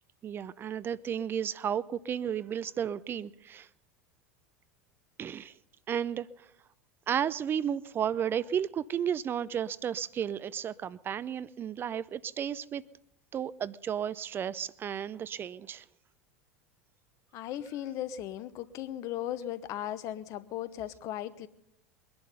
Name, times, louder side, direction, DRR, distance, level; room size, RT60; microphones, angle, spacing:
voice 1, 0.2-3.7 5.2-5.5 5.9-6.3 7.1-12.8 13.3-15.8, right 8 dB, 30° right, 17 dB, 0.5 m, -33 dB
voice 2, 17.3-21.5, left 12 dB, 45° left, 15 dB, 1.0 m, -37 dB
22.5 x 11.0 x 5.5 m, 0.79 s
figure-of-eight pair, 80°, 7 cm